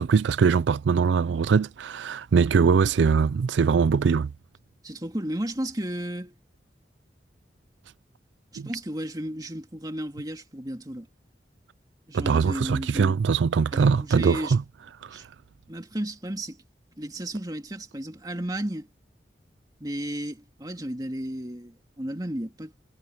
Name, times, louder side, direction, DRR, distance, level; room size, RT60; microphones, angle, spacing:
voice 1, 0.0-4.3 8.6-8.7 12.1-14.6 15.0-15.2, right 5 dB, 85° right, 0.4 m, -22 dB
voice 2, 4.8-6.3 8.5-11.1 12.1-13.2 13.7-14.6 15.1-15.2 15.7-16.6 17.0-18.9 19.8-22.7, right 1 dB, 20° right, 2.4 m, -33 dB
head